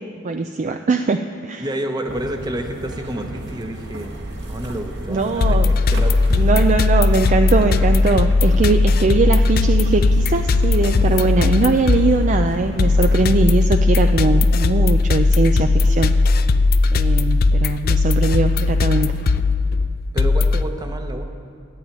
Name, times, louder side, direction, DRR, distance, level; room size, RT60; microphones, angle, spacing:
voice 1, 0.2-1.6 5.1-5.7 6.3-16.2 16.9-19.2, right 3 dB, 40° right, 7 dB, 0.4 m, -20 dB
voice 2, 1.6-4.1 4.5-6.2 6.5-6.6 20.1-21.2, right 1 dB, 20° right, 5 dB, 1.0 m, -29 dB
sound 1, 2.1-13.4, right 1 dB, 60° right, 1.5 m, -33 dB
sound 2, 5.4-20.6, left 3 dB, 50° left, 0.4 m, -17 dB
11.5 x 8.9 x 9.0 m, 2.3 s
head